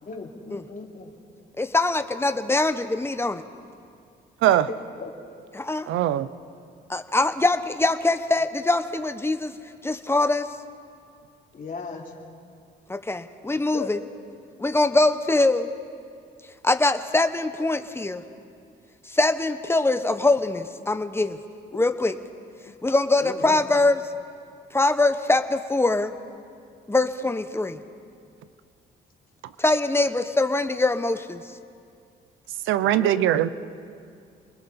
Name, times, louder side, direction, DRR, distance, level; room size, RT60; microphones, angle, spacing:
voice 1, 0.0-1.1 4.6-5.1 11.5-12.2 13.7-13.9 21.7-21.8 23.2-23.6 32.8-33.5, left 4 dB, 45° left, -1 dB, 3.3 m, -36 dB
voice 2, 1.6-3.4 5.5-5.9 6.9-9.5 9.8-10.5 12.9-14.0 14.6-15.7 16.6-18.2 19.0-21.4 21.7-22.1 22.8-24.0 24.7-26.1 26.9-27.8 29.6-31.4, left 2 dB, 10° left, 9 dB, 1.1 m, -23 dB
voice 3, 5.9-6.3 32.7-33.5, right 12 dB, 90° right, 15 dB, 0.7 m, -20 dB
29.0 x 21.0 x 4.3 m, 2.4 s
cardioid pair, 90°, 20 cm